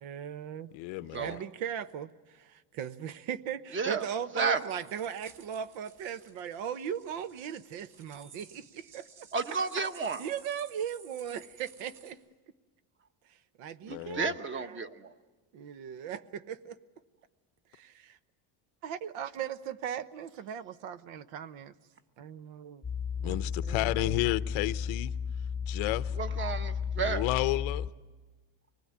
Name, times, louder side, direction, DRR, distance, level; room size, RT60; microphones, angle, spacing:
voice 1, 0.0-0.7 1.1-9.3 10.2-12.2 13.6-14.8 15.5-16.8 17.7-18.2 18.8-21.7 22.2-22.8 23.2-24.2, right 8 dB, 75° right, 1.1 m, -38 dB
voice 2, 0.7-1.4 13.9-14.3 23.2-25.1 25.7-26.2 27.0-27.9, left 18 dB, 85° left, 0.9 m, -31 dB
voice 3, 3.7-4.1 4.3-4.6 9.3-10.2 13.9-15.1 26.2-27.2, right 5 dB, 25° right, 1.1 m, -32 dB
sound 1, 4.7-12.1, right 5 dB, 60° right, 4.6 m, -56 dB
sound 2, 22.8-27.9, left 6 dB, 10° left, 1.0 m, -34 dB
24.5 x 20.0 x 9.6 m
cardioid pair, 145°, 46 cm